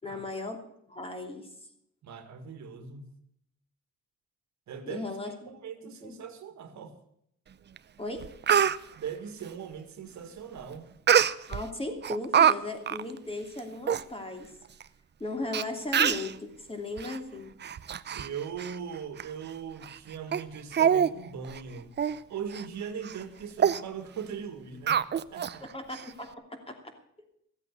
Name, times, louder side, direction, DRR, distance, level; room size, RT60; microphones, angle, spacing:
voice 1, 0.0-0.6 0.9-1.5 4.9-5.3 6.0-6.1 8.0-8.2 11.5-14.5 15.2-17.6 25.6-26.3 26.7-26.8, left 2 dB, 20° left, 4 dB, 2.8 m, -36 dB
voice 2, 2.0-3.1 4.7-5.1 5.5-6.9 9.0-10.9 18.1-21.9 22.3-25.0 25.3-25.6, right 7 dB, 70° right, 9 dB, 1.8 m, -40 dB
Speech, 7.8-7.9 8.2-8.8 11.1-11.6 12.0-12.5 12.9-13.0 13.6-13.7 13.9-14.0 14.8-14.9 15.5-15.6 15.9-16.3 17.0-17.2 17.6-18.3 18.6-18.8 19.2-19.3 19.8-20.0 20.3-20.4 20.7-21.1 21.4-21.6 22.0-22.2 22.5-22.7 23.0-23.2 23.6-23.8 24.9-25.5 25.9-26.0, right 8 dB, 35° right, 0.6 m, -24 dB
14.0 x 8.2 x 7.9 m, 0.73 s
cardioid pair, 90°, 30 cm